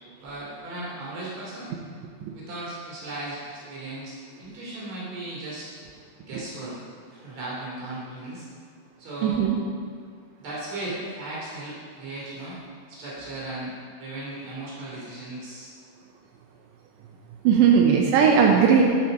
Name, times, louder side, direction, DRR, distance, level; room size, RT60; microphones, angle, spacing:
voice 1, 0.2-1.7 2.3-5.7 6.2-6.7 7.1-8.5 9.0-9.4 10.4-12.6 12.9-15.7, right 2 dB, 40° right, -7 dB, 3.3 m, -36 dB
voice 2, 9.2-9.6 17.4-18.8, right 7 dB, 85° right, 0 dB, 2.5 m, -17 dB
10.5 x 5.9 x 5.3 m, 2.1 s
omnidirectional pair, 5.8 m